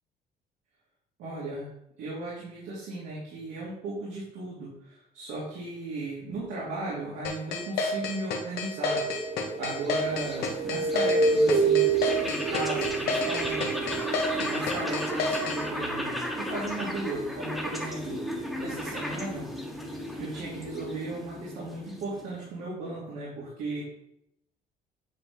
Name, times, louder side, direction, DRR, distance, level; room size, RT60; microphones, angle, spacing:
voice 1, 1.2-1.7 2.0-9.0 9.6-11.8 12.2-14.0 14.3-18.2 18.6-19.5 20.2-23.8, right 2 dB, 85° right, -8 dB, 3.1 m, -36 dB
sound 1, 7.2-15.6, left 4 dB, 75° left, 1.5 m, -30 dB
sound 2, 8.9-14.1, right 4 dB, 20° right, 1.0 m, -27 dB
sound 3, 9.0-22.5, equal, ahead, 1.5 m, -35 dB
9.5 x 4.5 x 3.7 m, 0.77 s
cardioid pair, 110°, 17 cm